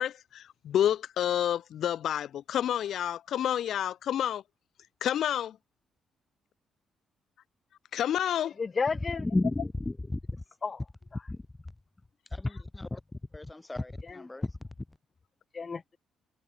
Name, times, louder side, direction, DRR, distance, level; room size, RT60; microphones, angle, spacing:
voice 1, 0.0-4.4 5.0-5.6 7.9-8.5, left 10 dB, 70° left, 0.7 m, -29 dB
voice 2, 8.6-9.3 10.6-11.3 14.0-14.3 15.5-16.0, left 5 dB, 35° left, 1.1 m, -33 dB
voice 3, 9.3-10.2 11.3-11.4 12.3-13.0 13.3-14.5, left 2 dB, 15° left, 1.5 m, -32 dB
cardioid pair, 90°, 0 cm